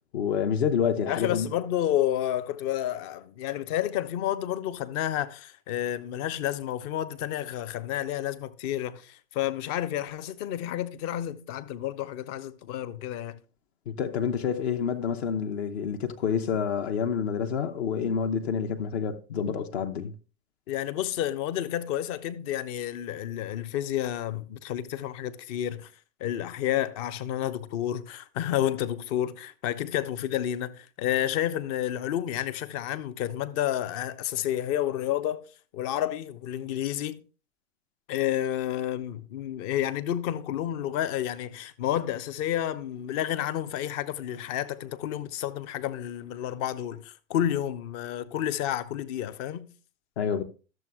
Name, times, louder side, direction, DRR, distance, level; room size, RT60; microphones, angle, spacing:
voice 1, 0.1-1.5 13.9-20.1 50.2-50.4, left 7 dB, 55° left, 0.8 m, -28 dB
voice 2, 1.1-13.4 20.7-25.9 26.2-35.5 35.7-37.2 38.1-49.7, left 11 dB, 30° left, 0.5 m, -30 dB
13.0 x 7.0 x 2.3 m
figure-of-eight pair, 95°, 40 cm